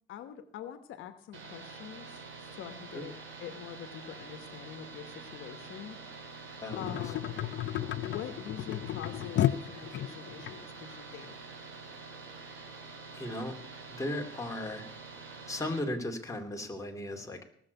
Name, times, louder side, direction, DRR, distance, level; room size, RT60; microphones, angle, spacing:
voice 1, 0.1-2.2 2.5-6.0 6.8-7.3 8.0-11.4, left 10 dB, 85° left, 9 dB, 1.2 m, -44 dB
sound 1, 1.3-15.8, right 4 dB, 80° right, 3.5 m, -47 dB
voice 2, 6.6-7.0 7.4-7.5 13.1-13.6 13.9-14.9 15.3-17.4, left 1 dB, 15° left, 2 dB, 2.6 m, -36 dB
sound 2, 6.7-10.5 11.2-11.3, left 12 dB, 70° left, 0.6 m, -33 dB
18.5 x 7.0 x 8.2 m, 0.67 s
cardioid pair, 90°, 20 cm